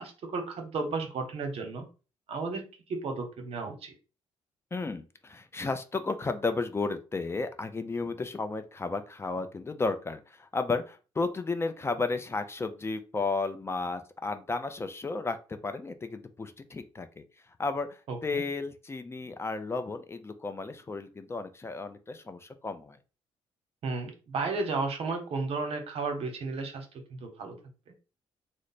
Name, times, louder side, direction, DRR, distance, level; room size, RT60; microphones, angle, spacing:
voice 1, 0.0-1.8 2.3-2.6 2.9-3.9 18.1-18.4 23.8-27.5, right 3 dB, 65° right, 4 dB, 0.9 m, -33 dB
voice 2, 4.7-15.4 15.6-17.2 17.6-23.0, left 3 dB, 25° left, 9 dB, 0.4 m, -33 dB
3.2 x 2.0 x 4.0 m, 0.34 s
cardioid pair, 95°, 11 cm